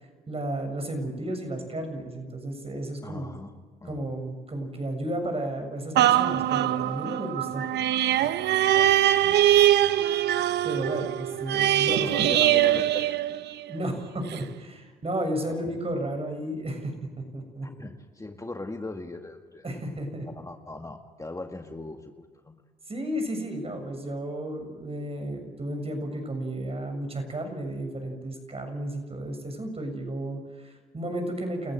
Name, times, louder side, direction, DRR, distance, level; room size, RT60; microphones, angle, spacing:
voice 1, 0.3-3.3 3.8-7.6 10.2-12.3 13.6-16.9 17.3-17.9 19.6-20.3 22.9-31.7, right 1 dB, 35° right, 5 dB, 6.9 m, -33 dB
voice 2, 3.0-3.5 3.8-4.1 9.2-9.4 11.9-13.3 15.5-15.8 17.6-19.6 20.2-22.6, left 2 dB, 20° left, 4 dB, 2.0 m, -39 dB
sound 1, 6.0-13.8 14.3-14.4, right 12 dB, 75° right, 0.9 m, -22 dB
29.0 x 15.0 x 7.9 m, 1.4 s
supercardioid pair, 60°, 18 cm